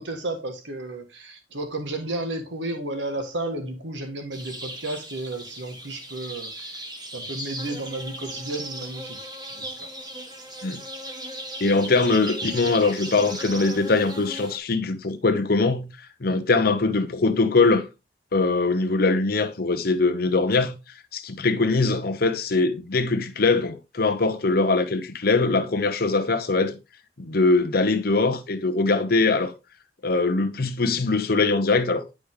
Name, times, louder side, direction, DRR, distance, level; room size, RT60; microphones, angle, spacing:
voice 1, 0.0-9.9, right 2 dB, 90° right, 1.5 m, -33 dB
sound 1, 4.3-14.6, right 1 dB, 25° right, 1.5 m, -37 dB
voice 2, 11.6-15.9 16.2-17.9 18.3-20.8 21.1-26.8 27.2-29.5 30.0-32.0, left 3 dB, 55° left, 0.8 m, -22 dB
10.5 x 5.1 x 3.6 m
head